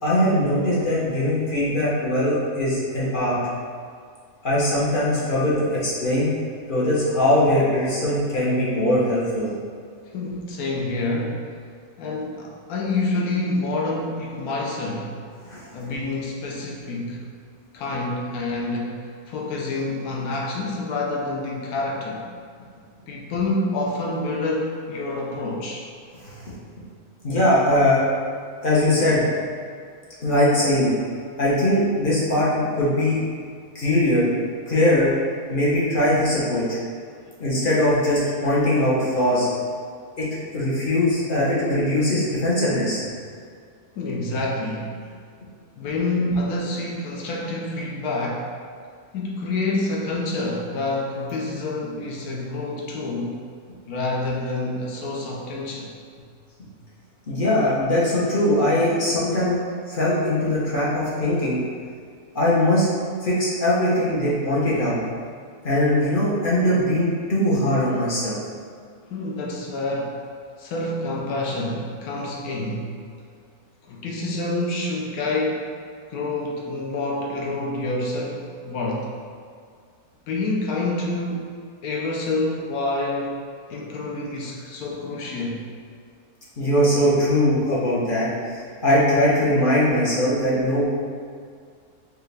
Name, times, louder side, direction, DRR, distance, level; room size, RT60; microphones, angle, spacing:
voice 1, 0.0-3.4 4.4-6.3 6.7-9.5 15.5-15.7 26.2-26.5 27.2-28.0 28.6-29.2 30.2-31.0 31.4-33.2 33.7-34.3 34.7-35.1 35.5-36.8 37.4-39.5 40.2-40.3 40.5-43.1 57.3-59.6 59.9-61.6 62.3-62.9 63.2-65.0 65.6-68.4 86.6-90.8, left 1 dB, 45° left, -7 dB, 0.7 m, -21 dB
voice 2, 10.1-11.5 12.0-15.2 15.7-17.3 17.7-22.2 23.1-25.9 43.9-44.9 45.8-48.5 49.1-53.4 53.9-55.9 69.0-70.2 70.6-72.9 73.8-75.7 76.1-79.1 80.3-81.5 81.8-83.4 83.7-85.6, left 2 dB, 80° left, -1 dB, 1.1 m, -27 dB
4.6 x 2.4 x 3.2 m, 2.1 s
omnidirectional pair, 1.6 m